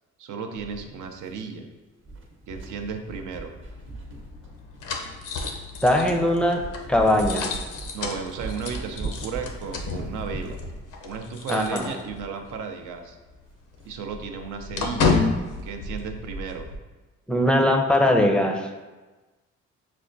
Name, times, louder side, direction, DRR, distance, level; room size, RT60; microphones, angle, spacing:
voice 1, 0.2-1.7 2.5-3.5 7.9-10.6 11.0-13.2 13.8-15.1 15.6-16.7, right 5 dB, 85° right, 5 dB, 0.5 m, -34 dB
sound 1, 0.6-1.7 2.0-5.0 5.6-5.7 6.1-6.3 6.6-12.6 12.9-13.0 13.3-13.4 13.8-14.0 14.4-14.5 14.8-15.1 15.4-16.4, right 3 dB, 40° right, 0.8 m, -40 dB
sound 2, 3.7-12.5 12.8-12.9 13.3-16.8, left 4 dB, 85° left, 0.6 m, -31 dB
voice 2, 5.8-6.6 6.9-7.4 11.5-11.9 17.3-18.7, left 1 dB, 5° left, 2 dB, 0.4 m, -20 dB
6.0 x 2.2 x 2.5 m, 1.2 s
cardioid pair, 90°, 30 cm